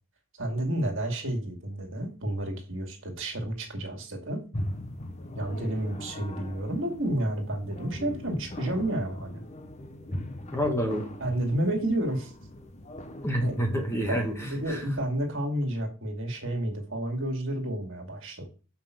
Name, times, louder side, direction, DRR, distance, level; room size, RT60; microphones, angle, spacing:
voice 1, 0.4-4.4 5.4-9.4 11.2-12.3 13.4-13.5 14.1-18.5, right 1 dB, 60° right, 3 dB, 2.2 m, -30 dB
sound 1, 4.5-14.7, left 1 dB, 30° left, 0.9 m, -40 dB
voice 2, 10.5-11.1 13.2-14.8, equal, 10° left, 3 dB, 1.3 m, -28 dB
5.7 x 5.4 x 6.7 m, 0.35 s
head